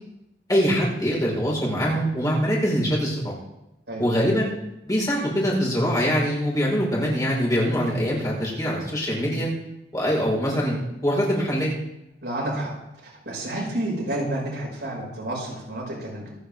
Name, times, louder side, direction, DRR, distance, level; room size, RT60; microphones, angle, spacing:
voice 1, 0.5-3.3 4.0-4.5 4.9-9.5 9.9-11.7, equal, 20° left, -4 dB, 4.8 m, -23 dB
voice 2, 12.2-12.7 13.0-16.3, right 1 dB, 75° right, -3 dB, 5.8 m, -30 dB
26.0 x 9.5 x 3.7 m, 0.91 s
head